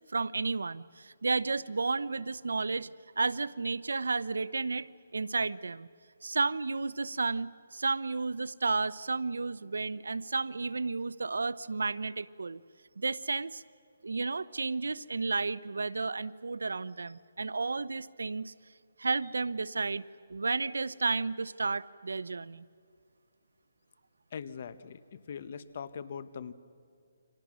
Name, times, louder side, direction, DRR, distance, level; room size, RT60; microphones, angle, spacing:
voice 1, 0.1-2.9 3.2-4.9 5.1-5.9 6.2-12.6 13.0-13.6 14.0-18.5 19.0-20.0 20.3-22.7, right 3 dB, 90° right, 18 dB, 0.7 m, -32 dB
voice 2, 24.3-26.5, left 7 dB, 45° left, 14 dB, 1.1 m, -41 dB
29.5 x 25.0 x 6.3 m, 2.3 s
hypercardioid pair, 165°, 0 cm